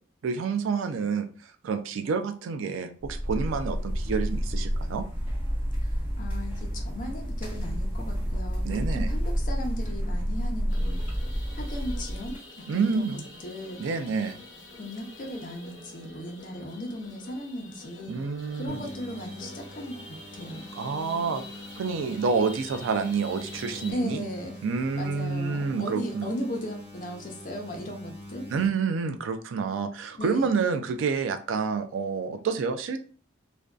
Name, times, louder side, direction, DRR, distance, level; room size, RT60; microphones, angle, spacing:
voice 1, 0.2-1.3 1.6-5.0 8.6-9.1 12.7-13.2 13.8-14.4 18.1-18.8 20.7-21.4 21.8-24.2 24.6-26.3 28.5-33.0, right 5 dB, 85° right, 8 dB, 0.3 m, -28 dB
sound 1, 3.0-12.4, equal, 10° right, 1.0 m, -29 dB
voice 2, 5.8-11.0 11.5-13.8 14.8-18.2 18.5-20.8 23.9-24.6 24.9-28.5 30.2-30.5, equal, 45° left, 2 dB, 0.5 m, -37 dB
sound 2, 10.7-23.9, left 2 dB, 75° left, 0.7 m, -46 dB
sound 3, 18.7-28.7, left 1 dB, 30° right, 1.1 m, -44 dB
2.5 x 2.2 x 2.3 m, 0.40 s
head